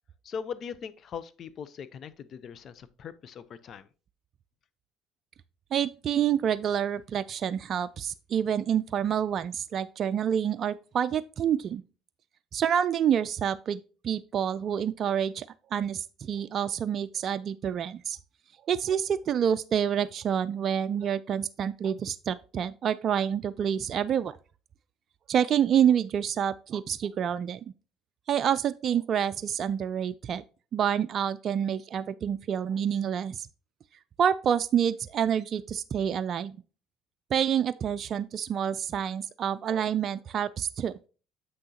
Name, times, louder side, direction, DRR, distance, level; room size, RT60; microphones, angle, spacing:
voice 1, 0.2-3.9, left 7 dB, 50° left, 0.7 m, -40 dB
voice 2, 5.7-11.8 12.5-15.5 15.7-18.2 18.7-24.4 25.3-27.6 28.3-30.4 30.7-33.5 34.2-36.6 37.3-40.9, right 8 dB, 50° right, 0.4 m, -28 dB
7.8 x 6.1 x 2.8 m
supercardioid pair, 75°, 0 cm